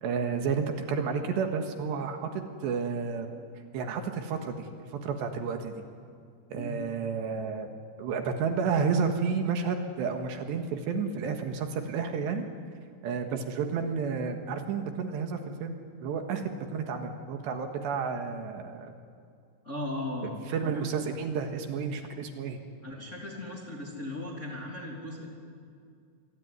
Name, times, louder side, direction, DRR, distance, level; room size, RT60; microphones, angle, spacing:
voice 1, 0.0-3.3 3.7-5.8 6.5-7.7 8.0-12.5 13.0-15.7 16.0-18.9 20.5-22.6, right 5 dB, 70° right, 5 dB, 3.5 m, -31 dB
voice 2, 19.6-20.9 22.8-25.4, left 1 dB, 20° left, -1 dB, 2.7 m, -37 dB
26.5 x 22.5 x 9.6 m, 2.3 s
omnidirectional pair, 5.5 m